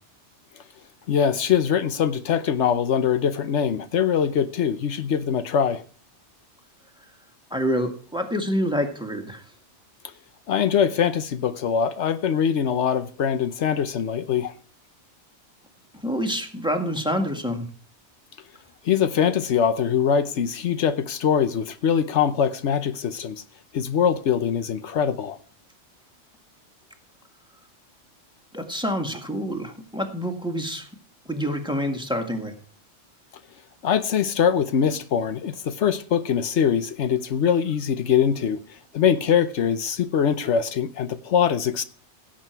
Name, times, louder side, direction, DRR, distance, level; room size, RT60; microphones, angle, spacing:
voice 1, 1.1-5.8 10.5-14.5 18.8-23.4 23.7-25.4 33.8-41.8, left 8 dB, 80° left, 1.1 m, -23 dB
voice 2, 7.5-9.4 16.0-17.7 28.5-30.9 31.3-32.5, equal, 5° right, 1.8 m, -27 dB
17.0 x 7.6 x 4.6 m
omnidirectional pair, 1.2 m